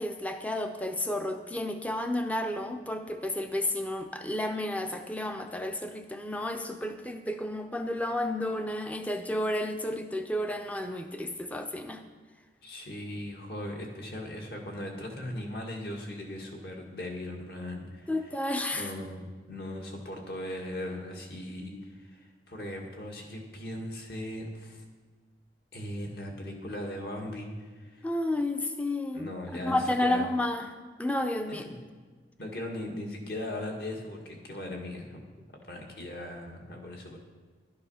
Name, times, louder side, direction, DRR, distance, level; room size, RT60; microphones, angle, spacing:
voice 1, 0.0-12.0 18.1-18.9 28.0-29.3 29.6-30.7 31.0-31.7, left 1 dB, 10° left, 6 dB, 0.6 m, -31 dB
voice 2, 12.6-18.1 18.7-24.8 25.7-28.1 29.1-30.2 31.5-31.7 32.4-35.2 35.7-37.2, left 1 dB, 60° left, 1 dB, 1.9 m, -38 dB
12.5 x 9.6 x 5.6 m, 1.4 s
head